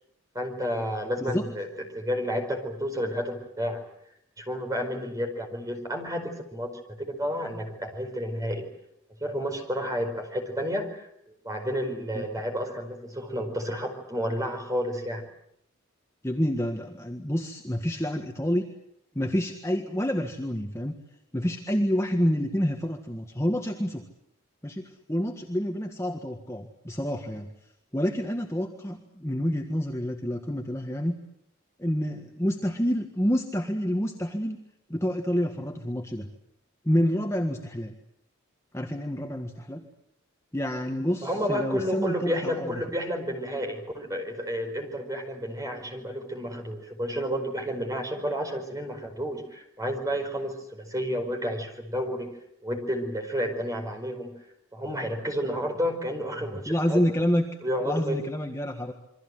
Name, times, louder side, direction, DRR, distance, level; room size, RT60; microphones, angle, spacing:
voice 1, 0.3-1.7 1.9-3.8 4.4-6.7 7.0-8.7 9.2-11.1 11.4-15.3 41.2-52.3 52.6-54.3 54.7-57.0 57.6-58.2, equal, 15° right, 3 dB, 5.0 m, -31 dB
voice 2, 16.2-18.7 19.2-21.0 21.3-24.0 24.6-27.5 27.9-31.1 31.8-34.6 34.9-36.3 36.9-38.0 38.7-39.9 40.5-42.8 56.4-57.5 57.8-58.9, equal, 15° left, 2 dB, 1.7 m, -28 dB
28.0 x 23.5 x 7.8 m, 0.75 s
head